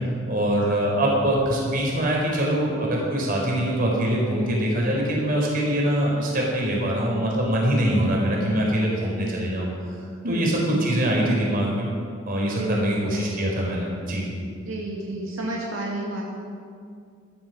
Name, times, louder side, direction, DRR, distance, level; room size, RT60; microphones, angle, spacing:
voice 1, 0.3-9.7 10.2-11.9 12.3-14.2, right 1 dB, 45° right, -2 dB, 4.6 m, -23 dB
voice 2, 10.2-10.8 12.5-13.0 14.6-16.2, right 2 dB, 90° right, -3 dB, 2.4 m, -30 dB
14.5 x 12.5 x 6.3 m, 2.2 s
head